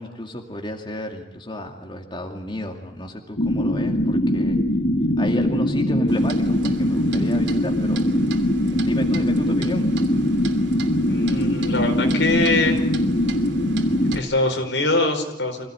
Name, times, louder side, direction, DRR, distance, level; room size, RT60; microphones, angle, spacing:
voice 1, 0.0-4.6 5.2-8.0 8.7-9.9, left 1 dB, 25° left, 2 dB, 2.4 m, -32 dB
sound 1, 3.4-14.2, left 1 dB, 50° left, 1.7 m, -21 dB
Clock, 6.1-14.2, right 4 dB, 85° right, 2.8 m, -39 dB
voice 2, 11.1-12.8 14.1-15.7, left 2 dB, 80° left, 4 dB, 4.8 m, -23 dB
25.5 x 17.0 x 9.8 m, 0.91 s
head